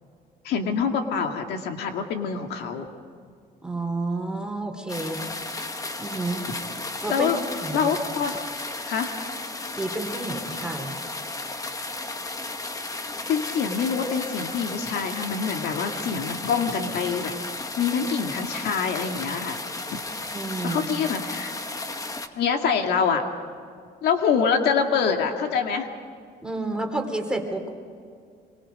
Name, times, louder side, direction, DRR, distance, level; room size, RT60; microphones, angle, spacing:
voice 1, 0.4-2.9 7.1-7.4 7.7-8.3 8.8-9.1 13.3-17.3 17.8-19.6 19.9-20.0 20.6-21.5 22.4-23.2 24.0-25.9, left 6 dB, 75° left, 4 dB, 2.0 m, -25 dB
voice 2, 3.6-5.2 6.0-6.5 7.0-7.3 7.6-7.9 9.7-11.0 20.3-20.8 26.4-27.7, right 2 dB, 5° right, 2 dB, 3.3 m, -30 dB
sound 1, 4.9-22.3, left 2 dB, 20° left, 1.4 m, -34 dB
25.5 x 23.5 x 5.2 m, 2.2 s
cardioid pair, 110°, 17 cm